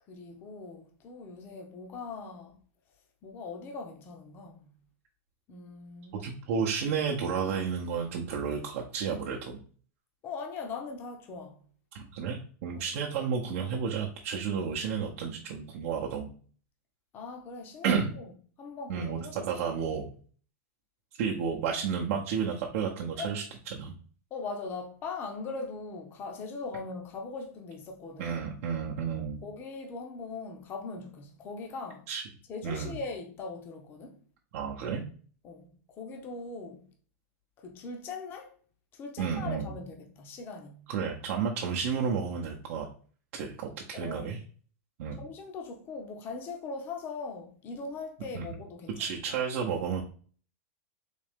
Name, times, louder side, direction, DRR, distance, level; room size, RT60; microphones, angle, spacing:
voice 1, 0.1-2.6 3.2-4.7 5.5-6.2 10.2-11.6 17.1-18.3 18.6-19.7 23.2-23.3 24.3-28.4 29.4-32.0 32.5-34.2 35.4-36.8 37.6-38.5 38.9-40.9 43.9-44.3 45.2-49.0, left 4 dB, 25° left, 0.6 m, -40 dB
voice 2, 6.1-9.6 11.9-16.3 17.8-18.1 18.9-20.1 21.2-24.0 28.2-29.4 32.1-32.2 32.6-32.9 34.5-35.0 39.2-39.7 40.9-42.9 43.3-44.4 45.0-45.2 48.3-48.5 49.0-50.0, right 6 dB, 55° right, 0.7 m, -32 dB
4.0 x 2.8 x 3.5 m
supercardioid pair, 150°, 8 cm